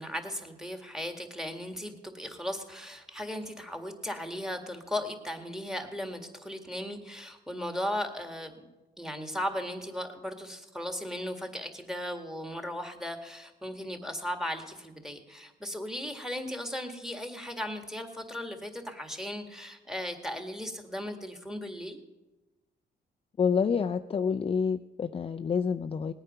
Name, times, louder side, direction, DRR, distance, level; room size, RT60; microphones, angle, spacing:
voice 1, 0.0-8.7 9.0-22.0, equal, ahead, 5 dB, 1.8 m, -37 dB
voice 2, 23.4-26.1, left 6 dB, 30° left, 7 dB, 0.4 m, -28 dB
19.5 x 8.9 x 5.6 m, 1.1 s
cardioid pair, 90°, 20 cm